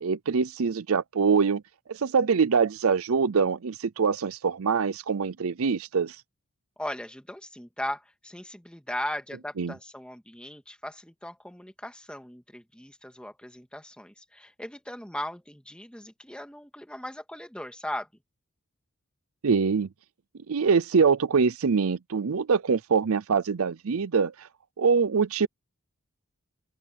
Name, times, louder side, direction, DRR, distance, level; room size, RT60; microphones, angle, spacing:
voice 1, 0.0-1.6 1.9-6.2 9.6-9.7 19.4-19.9 20.5-24.5 24.8-25.5, right 5 dB, 70° right, 0.6 m, -24 dB
voice 2, 6.8-18.1, left 1 dB, 5° left, 2.2 m, -38 dB
open air
head